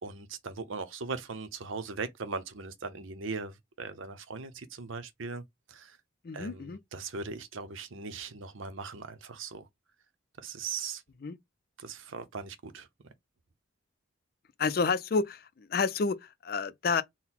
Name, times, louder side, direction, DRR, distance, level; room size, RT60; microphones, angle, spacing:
voice 1, 0.0-5.4 5.7-6.0 6.3-9.7 10.4-11.0 11.8-12.9, right 4 dB, 85° right, 0.7 m, -39 dB
voice 2, 6.2-6.8 11.2-11.4 14.6-17.0, left 4 dB, 50° left, 0.4 m, -29 dB
4.0 x 2.1 x 4.2 m
head